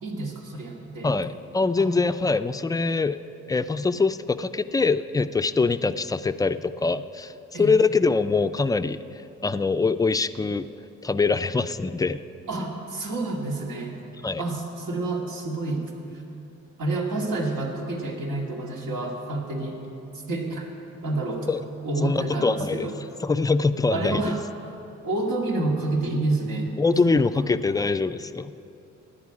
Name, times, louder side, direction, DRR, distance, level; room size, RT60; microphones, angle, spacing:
voice 1, 0.0-1.1 1.8-2.0 7.5-7.7 12.5-14.0 14.4-15.9 16.8-19.8 20.3-20.7 21.0-21.5 21.8-23.0 23.9-24.4 25.0-26.8 27.0-27.5, right 2 dB, 80° right, -1 dB, 2.2 m, -28 dB
voice 2, 1.0-3.2 3.5-9.0 9.4-10.7 11.0-12.2 14.2-14.4 21.5-21.6 22.0-22.9 23.2-24.3 26.8-28.5, left 4 dB, 15° left, 12 dB, 0.3 m, -23 dB
16.5 x 10.5 x 4.9 m, 2.9 s
cardioid pair, 90°, 30 cm